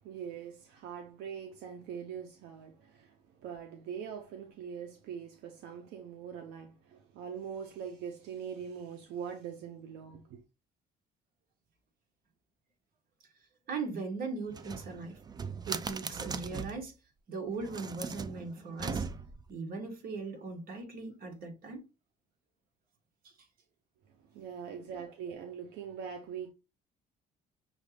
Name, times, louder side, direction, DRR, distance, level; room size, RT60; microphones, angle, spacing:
voice 1, 0.0-10.4 24.2-26.5, right 7 dB, 85° right, 0.7 m, -42 dB
voice 2, 13.7-15.2 15.7-16.9 17.3-19.1 19.5-21.9 23.2-23.3, right 4 dB, 60° right, 1.4 m, -39 dB
sound 1, 14.5-16.9 17.6-19.5, right 5 dB, 25° right, 0.4 m, -39 dB
6.3 x 2.4 x 3.3 m
cardioid pair, 110°, 17 cm